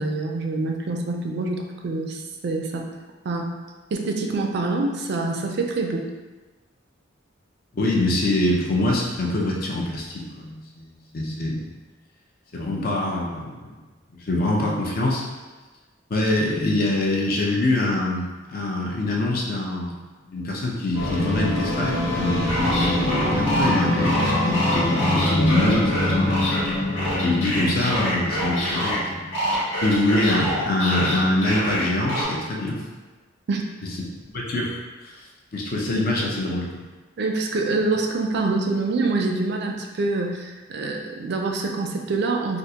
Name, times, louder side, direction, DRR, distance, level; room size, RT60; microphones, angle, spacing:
voice 1, 0.0-2.9 3.2-3.5 3.9-6.1 33.5-33.6 37.2-42.6, right 3 dB, 60° right, 2 dB, 0.4 m, -25 dB
voice 2, 7.7-11.7 12.5-13.7 14.2-15.2 16.1-20.0 20.2-26.3 27.2-29.2 29.8-32.8 34.3-34.8 35.0-35.2 35.5-36.8, left 1 dB, 50° left, -2 dB, 0.6 m, -24 dB
sound 1, 20.9-29.5, left 1 dB, 90° left, 0.8 m, -25 dB
sound 2, 22.5-29.0 29.3-32.3, equal, 70° left, 1.4 m, -26 dB
3.5 x 2.4 x 2.8 m, 1.2 s
head